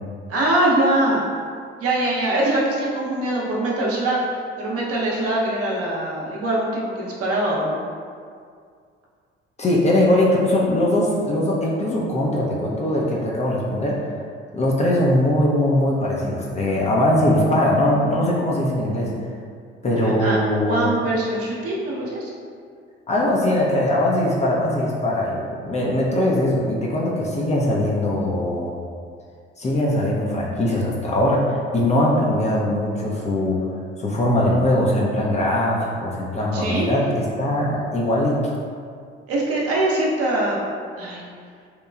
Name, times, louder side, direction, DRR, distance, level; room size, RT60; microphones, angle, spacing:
voice 1, 0.3-1.3 1.8-4.2 4.6-7.8 20.0-20.4 20.6-22.3 36.5-36.9 39.3-40.6 41.0-41.2, right 1 dB, 50° right, -4 dB, 0.7 m, -22 dB
voice 2, 9.6-14.1 14.5-19.1 19.8-20.9 23.1-28.7 29.6-33.6 34.0-38.5, left 1 dB, 25° left, -4 dB, 0.5 m, -21 dB
2.9 x 2.2 x 2.3 m, 2.1 s
hypercardioid pair, 50°, 30 cm